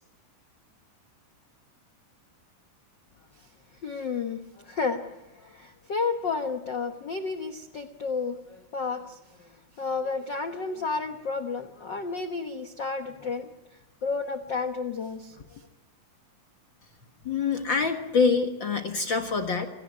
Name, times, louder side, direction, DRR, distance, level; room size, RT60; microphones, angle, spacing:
voice 1, 3.8-13.5 14.0-15.7, left 4 dB, 80° left, 7 dB, 1.0 m, -32 dB
voice 2, 17.2-19.7, left 5 dB, 45° left, 6 dB, 1.6 m, -25 dB
27.5 x 18.0 x 9.5 m, 1.1 s
omnidirectional pair, 4.0 m